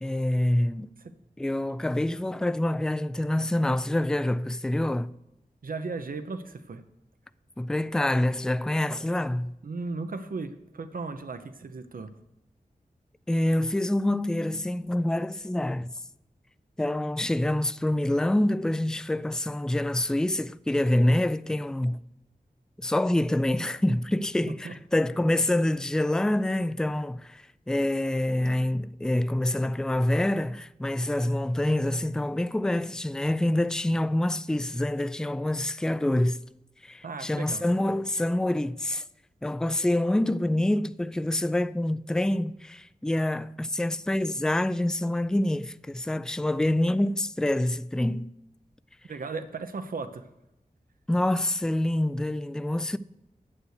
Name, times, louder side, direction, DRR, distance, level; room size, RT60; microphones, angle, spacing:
voice 1, 0.0-0.9 1.4-5.1 7.6-9.6 13.3-16.0 16.8-22.0 22.8-36.4 36.8-39.0 39.4-48.3 51.1-53.0, left 1 dB, 5° left, 0.3 m, -26 dB
voice 2, 5.6-6.8 9.6-12.1 24.6-24.8 37.0-37.6 49.1-50.3, right 4 dB, 70° right, 0.8 m, -36 dB
9.7 x 7.9 x 6.5 m
wide cardioid pair, 80°, 15 cm